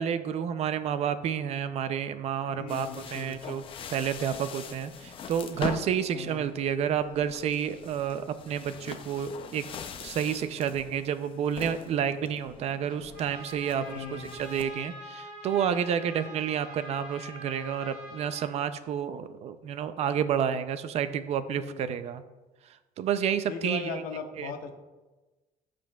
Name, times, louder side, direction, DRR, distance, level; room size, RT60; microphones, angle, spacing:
voice 1, 0.0-3.6 3.9-9.6 10.0-22.2 23.0-24.0 24.4-24.5, right 8 dB, 45° right, 12 dB, 0.4 m, -30 dB
voice 2, 2.5-3.6 4.3-4.5 6.1-6.5 13.8-14.4 21.5-21.9 23.5-24.8, left 5 dB, 85° left, 6 dB, 0.9 m, -39 dB
sound 1, 2.7-14.7, left 7 dB, 35° left, 0.5 m, -43 dB
Trumpet, 13.1-18.5, equal, 80° right, 2.4 m, -44 dB
14.0 x 5.1 x 2.3 m, 1.2 s
cardioid pair, 160°, 15 cm